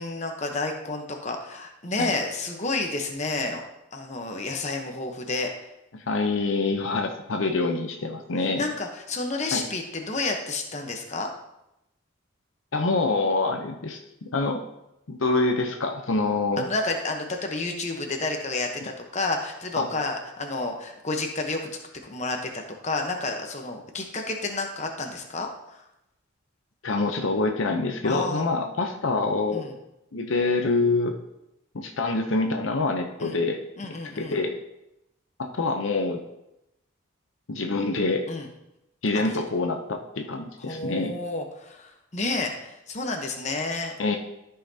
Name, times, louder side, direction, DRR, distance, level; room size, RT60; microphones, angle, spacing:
voice 1, 0.0-3.6 3.9-5.5 8.5-11.3 16.6-25.9 28.0-28.4 29.5-29.8 33.2-33.4 33.8-34.4 38.3-38.5 39.1-39.3 40.6-43.9, left 3 dB, 35° left, 3 dB, 0.9 m, -30 dB
voice 2, 5.9-8.6 9.5-9.6 12.7-14.6 15.1-16.7 19.8-19.9 26.8-29.6 30.1-31.1 31.7-33.6 34.2-34.5 35.4-36.2 37.5-38.3 39.0-41.1 44.0-44.2, left 3 dB, 70° left, 4 dB, 0.7 m, -26 dB
13.0 x 5.7 x 2.8 m, 0.87 s
head